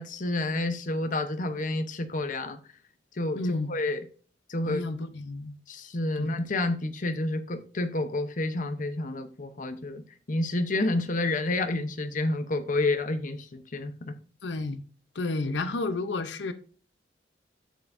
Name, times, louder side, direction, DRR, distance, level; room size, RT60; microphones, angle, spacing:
voice 1, 0.0-2.6 3.1-4.0 4.5-4.8 5.7-10.0 10.3-14.2, left 2 dB, 45° left, 0.8 m, -29 dB
voice 2, 3.4-3.7 4.6-5.5 6.2-6.4 14.4-14.8 15.1-16.5, left 2 dB, 85° left, 0.7 m, -31 dB
10.0 x 7.1 x 2.6 m
head